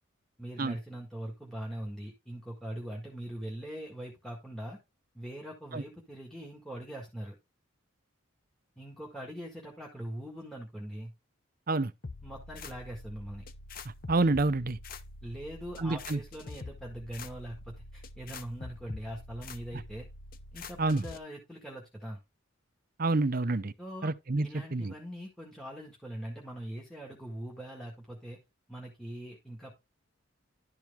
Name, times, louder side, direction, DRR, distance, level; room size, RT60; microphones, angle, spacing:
voice 1, 0.4-4.8 5.1-7.3 8.8-11.1 12.2-13.4 15.2-20.1 20.5-22.2 23.8-24.1 24.4-28.4 28.7-29.7, right 1 dB, ahead, 1.6 m, -42 dB
sound 1, 12.0-21.2, left 3 dB, 40° left, 0.6 m, -45 dB
voice 2, 14.1-14.8 15.8-16.2 20.8-21.0 23.0-23.7 24.0-24.9, right 3 dB, 45° right, 0.6 m, -28 dB
11.5 x 4.7 x 3.4 m
head